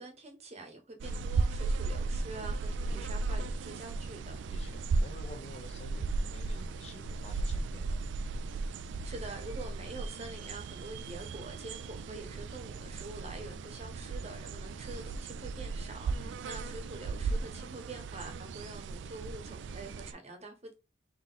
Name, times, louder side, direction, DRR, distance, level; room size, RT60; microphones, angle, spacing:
voice 1, 0.0-4.4 9.0-20.7, right 2 dB, 35° right, 1.0 m, -46 dB
sound 1, 1.0-20.1, right 3 dB, 70° right, 0.3 m, -36 dB
voice 2, 4.5-8.0 16.1-16.4, left 2 dB, 35° left, 1.0 m, -51 dB
3.7 x 3.0 x 3.9 m
head